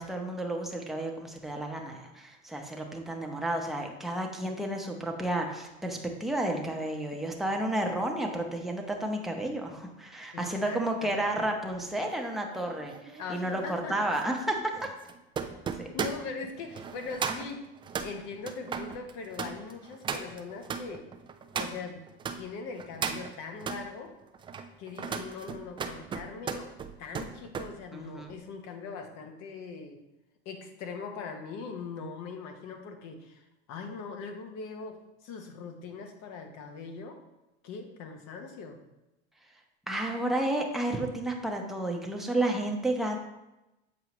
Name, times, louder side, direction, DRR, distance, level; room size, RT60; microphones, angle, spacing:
voice 1, 0.0-14.9 15.8-15.9 27.9-28.3 39.9-43.2, right 1 dB, ahead, 1 dB, 0.8 m, -31 dB
voice 2, 10.3-11.2 13.2-14.0 15.9-17.6 18.0-21.0 21.5-22.0 22.4-24.1 24.8-26.7 27.0-30.0 30.4-37.2 37.6-38.8, left 4 dB, 55° left, 5 dB, 1.1 m, -41 dB
sound 1, 11.7-22.4 22.8-23.8 24.3-27.7 28.1-28.4, right 6 dB, 15° right, 0.3 m, -37 dB
7.4 x 4.7 x 3.0 m, 0.96 s
supercardioid pair, 105°, 32 cm